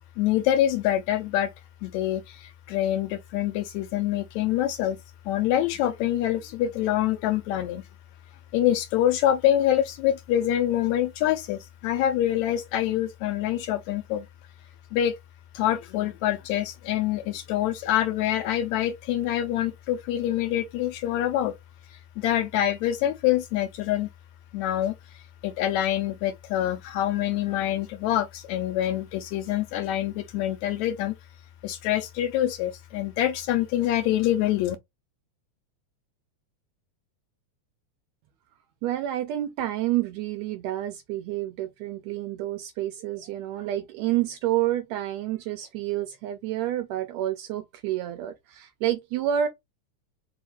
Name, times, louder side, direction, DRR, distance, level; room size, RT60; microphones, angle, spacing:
voice 1, 0.2-1.5 1.8-5.0 5.3-7.8 8.5-14.3 14.9-15.1 15.5-21.5 21.9-24.1 24.5-24.9 25.4-31.1 31.6-34.8, left 12 dB, 80° left, 1.7 m, -25 dB
voice 2, 38.8-49.5, right 12 dB, 80° right, 1.6 m, -29 dB
4.8 x 2.3 x 4.2 m
omnidirectional pair, 3.5 m